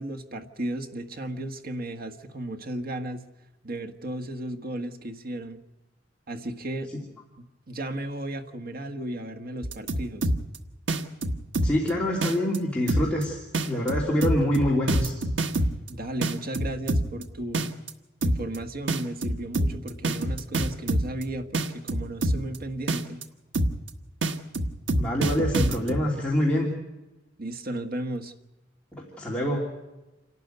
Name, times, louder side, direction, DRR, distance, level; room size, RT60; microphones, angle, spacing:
voice 1, 0.0-3.2 3.6-5.6 6.3-6.9 7.4-10.3 15.9-17.7 18.2-23.2 27.4-28.3, right 1 dB, 55° right, 5 dB, 1.5 m, -35 dB
sound 1, 9.6-10.6 10.9-11.9 12.2-12.6 12.9-13.2 13.5-15.9 16.2-17.2 17.5-17.9 18.2-18.6 18.9-21.2 21.5-22.6 22.9-23.2 23.5-23.9 24.2-26.0, right 1 dB, 90° right, 1.4 m, -25 dB
voice 2, 11.6-13.4 13.6-15.2 25.0-26.7 28.9-29.7, left 1 dB, 5° left, -4 dB, 2.8 m, -25 dB
28.0 x 12.5 x 9.4 m, 1.0 s
head